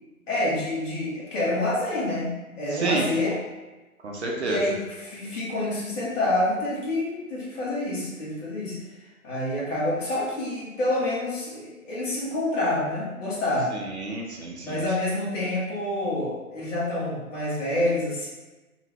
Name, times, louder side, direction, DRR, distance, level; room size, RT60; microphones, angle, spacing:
voice 1, 0.3-3.4 4.4-8.8 9.2-13.7 14.6-18.3, left 1 dB, 60° left, -6 dB, 1.3 m, -27 dB
voice 2, 2.7-3.1 4.0-4.6 13.7-14.8, right 3 dB, 50° right, -1 dB, 0.6 m, -29 dB
2.9 x 2.5 x 3.0 m, 1.1 s
figure-of-eight pair, 145°, 44 cm